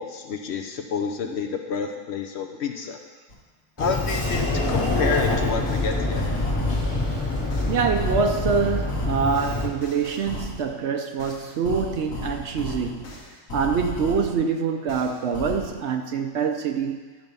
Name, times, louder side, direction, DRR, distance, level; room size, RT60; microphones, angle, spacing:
voice 1, 0.0-3.0 3.8-6.3, left 5 dB, 60° left, 4 dB, 0.9 m, -29 dB
sound 1, 3.3-3.4 3.8-7.0 7.5-10.7 11.2-14.4 14.9-15.7, left 2 dB, 80° left, 1.5 m, -35 dB
Sliding door, 3.8-9.7, left 2 dB, 25° left, 1.3 m, -25 dB
voice 2, 7.7-13.1 13.5-17.0, right 5 dB, 65° right, 5 dB, 0.8 m, -25 dB
10.5 x 4.6 x 5.3 m, 1.3 s
omnidirectional pair, 1.4 m